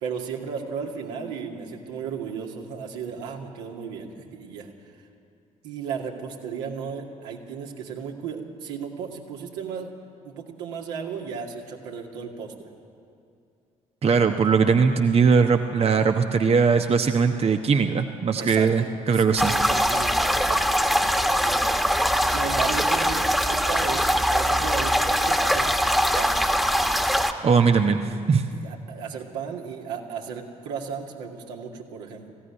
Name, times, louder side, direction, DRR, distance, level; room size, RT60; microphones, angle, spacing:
voice 1, 0.0-4.7 5.6-9.9 10.2-12.7 18.4-21.6 22.3-25.7 26.2-26.4 28.6-32.3, right 6 dB, 70° right, 0 dB, 2.3 m, -35 dB
voice 2, 14.0-19.5 27.4-28.5, right 5 dB, 35° right, 6 dB, 1.1 m, -20 dB
sound 1, 19.4-27.3, equal, ahead, 1.7 m, -22 dB
20.0 x 16.0 x 9.9 m, 2.4 s
figure-of-eight pair, 50°, 18 cm